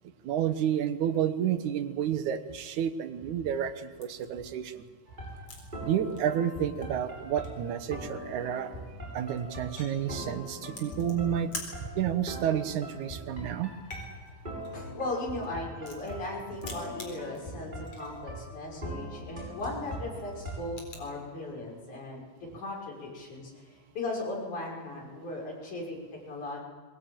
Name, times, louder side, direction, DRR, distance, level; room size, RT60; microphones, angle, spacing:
voice 1, 0.2-4.8 5.8-8.8 9.1-11.5 11.9-13.7, right 9 dB, 85° right, 11 dB, 2.6 m, -30 dB
sound 1, 4.0-4.3 4.7-5.7 6.0-6.4 6.8-6.9 7.1-7.7 8.7-8.8 9.1-10.0 10.7-11.7 12.1-12.3 12.6-13.3 13.7-16.3 16.6-18.2 18.5-18.6 19.0-19.2 19.6-21.1, left 3 dB, 55° left, 5.1 m, -46 dB
sound 2, 5.1-20.6, equal, 15° right, 8.0 m, -42 dB
voice 2, 14.7-22.2 22.5-26.6, left 2 dB, 85° left, -1 dB, 7.3 m, -37 dB
23.0 x 21.0 x 9.1 m, 1.5 s
omnidirectional pair, 3.4 m